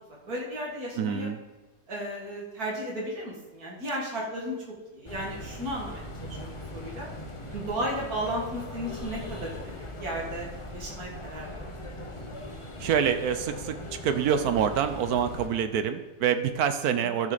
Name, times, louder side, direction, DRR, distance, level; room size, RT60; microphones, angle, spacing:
voice 1, 0.3-1.3 1.9-4.6 4.9-6.0 6.4-7.1 7.5-10.5 10.7-11.7, equal, 55° right, -2 dB, 2.3 m, -34 dB
voice 2, 1.0-1.4 12.8-13.8 14.0-17.3, right 8 dB, 70° right, 10 dB, 1.0 m, -26 dB
sound 1, 5.0-15.5, left 1 dB, 30° left, 0.6 m, -40 dB
13.0 x 6.0 x 4.0 m, 1.1 s
omnidirectional pair, 2.0 m